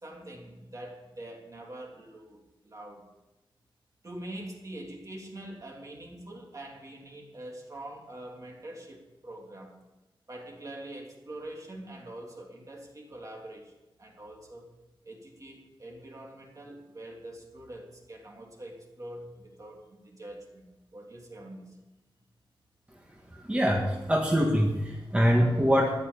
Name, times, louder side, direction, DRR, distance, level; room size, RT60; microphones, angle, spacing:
voice 1, 0.0-3.0 4.0-9.8 10.3-14.7 15.0-20.6 20.9-21.8, right 1 dB, 40° right, -1 dB, 3.1 m, -44 dB
voice 2, 23.3-26.0, equal, 15° right, -2 dB, 1.8 m, -24 dB
14.0 x 11.5 x 7.0 m, 1.0 s
wide cardioid pair, 135°, 9 cm